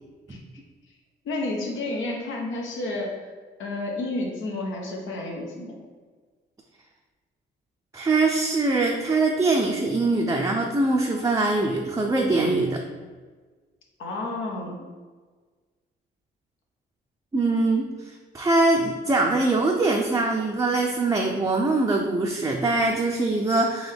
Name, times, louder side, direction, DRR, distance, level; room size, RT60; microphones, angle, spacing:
voice 1, 1.2-3.2 3.6-5.8 14.0-14.8, left 2 dB, 75° left, 0 dB, 1.1 m, -30 dB
voice 2, 7.9-12.8 17.3-23.9, right 2 dB, 15° right, 0 dB, 0.5 m, -23 dB
3.9 x 3.5 x 3.4 m, 1.4 s
cardioid pair, 90°, 20 cm